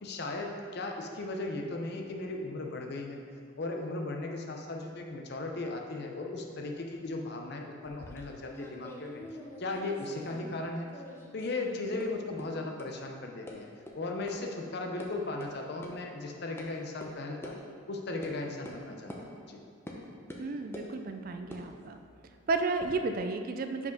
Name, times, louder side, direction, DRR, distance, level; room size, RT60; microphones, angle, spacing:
voice 1, 0.0-3.2 3.6-9.2 9.6-10.9 11.3-13.7 13.9-17.5 17.9-19.6, left 2 dB, 50° left, 2 dB, 0.7 m, -37 dB
sound 1, 7.8-10.6 10.9-11.6 12.0-12.1 12.4-12.5 12.8-12.9 13.5-13.6 13.9-14.0 14.3-14.4 14.7-15.1 15.4-15.5 15.8-15.9 16.6-16.7 17.0-17.1 17.4-17.6 18.2-18.4 18.6-18.8 19.1-19.2 19.9-20.0 20.3-20.9 21.4-22.9, left 1 dB, 10° left, 0.6 m, -46 dB
voice 2, 20.4-22.0 22.5-23.9, right 3 dB, 45° right, 7 dB, 0.3 m, -32 dB
5.5 x 4.6 x 5.3 m, 2.2 s
head